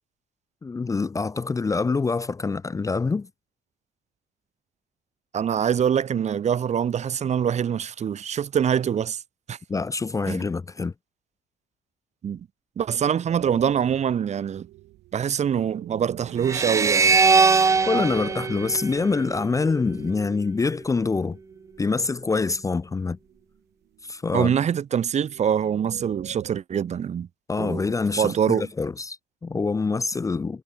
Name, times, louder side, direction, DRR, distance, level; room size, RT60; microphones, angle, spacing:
voice 1, 0.6-3.3 9.7-10.9 17.9-21.4 21.8-23.2 24.0-24.6 27.5-30.6, left 4 dB, 20° left, 0.7 m, -25 dB
voice 2, 5.3-9.2 9.5-9.6 10.3-10.4 12.2-12.5 12.8-14.7 15.1-17.2 24.3-27.3 27.6-27.8 28.2-28.7, right 8 dB, 40° right, 1.3 m, -24 dB
sound 1, 13.3-20.5 21.1-22.4 22.9-23.4 23.9-26.6, right 17 dB, 80° right, 7.6 m, -44 dB
sound 2, 16.4-19.7, right 4 dB, 20° right, 0.4 m, -21 dB
cardioid pair, 110°, 17 cm